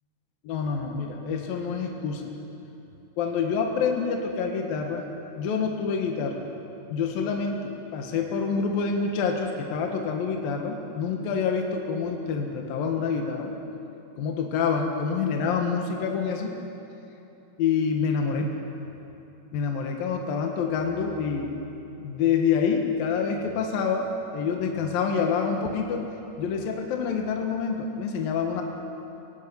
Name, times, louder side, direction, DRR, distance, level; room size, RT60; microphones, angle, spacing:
voice 1, 0.5-2.2 3.2-5.0 5.4-6.4 6.9-13.5 14.2-16.5 17.6-18.5 19.5-21.5 22.0-26.1 26.4-28.6, left 6 dB, 65° left, 2 dB, 3.2 m, -27 dB
22.0 x 17.0 x 9.7 m, 3.0 s
omnidirectional pair, 4.6 m